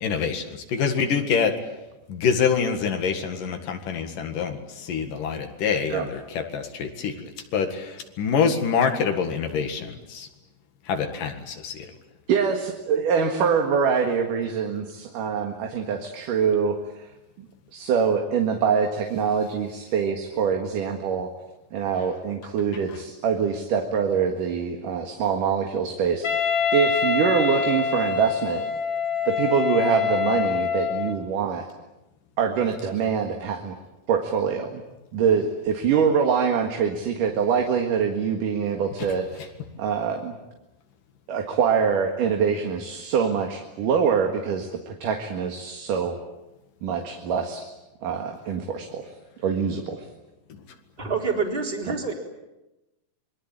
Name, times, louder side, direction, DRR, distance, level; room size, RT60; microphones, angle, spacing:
voice 1, 0.0-1.6 2.1-7.2 7.5-10.3 10.9-11.9, left 6 dB, 70° left, 6 dB, 3.5 m, -26 dB
voice 2, 12.3-16.8 17.7-21.3 21.7-28.7 29.3-31.7 32.4-33.8 34.1-34.8 35.1-39.4 39.8-40.3 41.3-46.2 46.8-47.7 48.0-49.1 49.4-50.0 51.9-52.0, right 6 dB, 70° right, 3 dB, 3.3 m, -24 dB
Wind instrument woodwind instrument, 26.2-31.2, left 6 dB, 40° left, 1.8 m, -25 dB
voice 3, 51.0-52.1, right 4 dB, 15° right, 1 dB, 3.7 m, -27 dB
27.0 x 22.0 x 8.8 m, 0.98 s
omnidirectional pair, 4.0 m